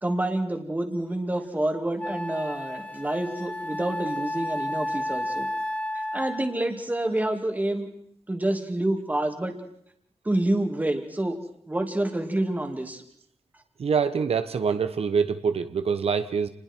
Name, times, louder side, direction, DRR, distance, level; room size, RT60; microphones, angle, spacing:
voice 1, 0.0-5.5 5.9-7.9 8.3-9.5 10.2-11.4 11.7-13.0, right 1 dB, 15° right, 4 dB, 2.5 m, -28 dB
Wind instrument woodwind instrument, 1.3-1.4 2.0-6.6, left 1 dB, 15° left, 1.5 m, -32 dB
voice 2, 13.8-16.5, right 6 dB, 80° right, 10 dB, 1.1 m, -25 dB
29.5 x 21.0 x 4.6 m, 0.72 s
wide cardioid pair, 170°, 10 cm